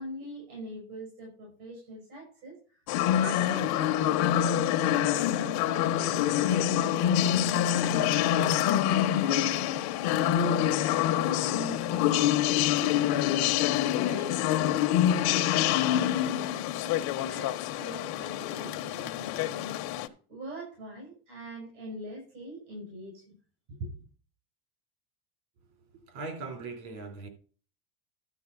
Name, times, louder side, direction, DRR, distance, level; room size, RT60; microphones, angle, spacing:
voice 1, 0.0-2.6 3.2-9.7 10.0-12.3 12.8-13.5 13.9-14.8 15.1-23.3 23.7-23.9, right 1 dB, 90° right, 6.8 m, -43 dB
sound 1, 2.9-20.1, left 11 dB, 55° left, 1.1 m, -26 dB
voice 2, 26.1-27.3, right 3 dB, 75° right, 3.7 m, -39 dB
12.5 x 4.4 x 7.0 m
supercardioid pair, 115°, 44 cm